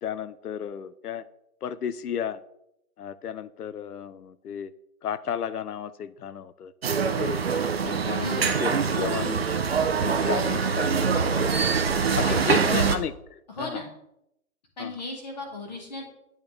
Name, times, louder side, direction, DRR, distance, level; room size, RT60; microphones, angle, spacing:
voice 1, 0.0-1.2 1.6-2.4 3.0-4.7 5.0-6.7 7.2-7.4 7.8-9.5 10.0-11.1 12.1-13.8 14.8-14.9, left 8 dB, 80° left, 16 dB, 0.7 m, -33 dB
sound 1, 6.8-13.0, right 5 dB, 45° right, 0.7 m, -24 dB
voice 2, 8.2-8.6 12.2-12.7 13.5-13.9 14.8-16.0, left 2 dB, 30° left, 2 dB, 1.5 m, -36 dB
8.8 x 8.2 x 3.3 m, 0.81 s
hypercardioid pair, 170°, 45 cm